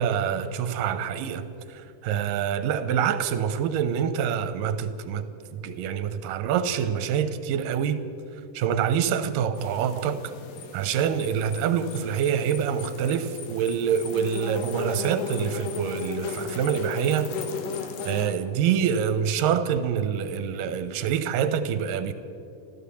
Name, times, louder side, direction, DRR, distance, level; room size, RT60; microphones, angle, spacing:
voice 1, 0.0-5.3 5.5-8.0 8.5-10.3 10.7-17.3 18.1-22.1, right 8 dB, 80° right, 2.4 m, -26 dB
sound 1, 9.6-18.3, left 6 dB, 90° left, 3.1 m, -36 dB
15.0 x 13.5 x 7.0 m
omnidirectional pair, 3.8 m